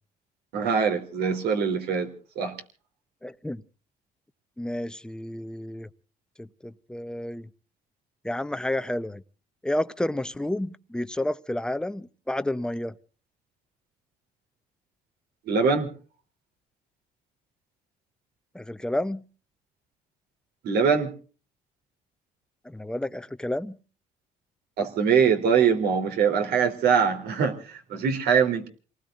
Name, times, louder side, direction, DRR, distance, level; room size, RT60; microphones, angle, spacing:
voice 1, 0.5-2.1 2.3-2.5 15.5-15.9 20.6-21.1 24.8-28.7, right 6 dB, 70° right, 3.4 m, -23 dB
voice 2, 3.2-3.6 4.6-5.9 6.4-7.5 8.2-9.2 9.6-12.9 18.5-19.2 22.6-23.8, left 1 dB, 5° left, 0.8 m, -30 dB
29.5 x 19.5 x 2.5 m
cardioid pair, 110°, 17 cm